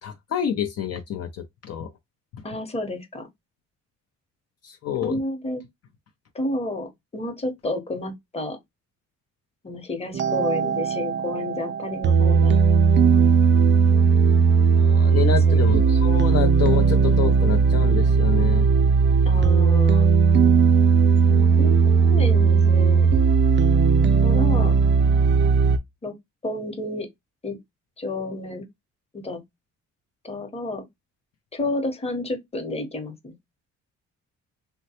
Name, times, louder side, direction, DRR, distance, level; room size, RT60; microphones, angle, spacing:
voice 1, 0.0-1.9 2.3-2.4 4.6-5.2 14.7-18.7, left 9 dB, 55° left, 0.5 m, -28 dB
voice 2, 2.4-3.3 5.0-5.6 6.3-8.6 9.6-12.6 15.5-15.6 19.2-20.1 21.3-23.1 24.2-24.7 26.0-26.2 26.4-27.1 27.4-27.6 28.0-28.6 29.1-29.4 30.2-30.8 31.5-33.3, left 1 dB, 20° left, 0.9 m, -30 dB
sound 1, 10.1-25.8, right 5 dB, 40° right, 0.4 m, -18 dB
3.2 x 2.2 x 2.8 m
cardioid pair, 90°, 30 cm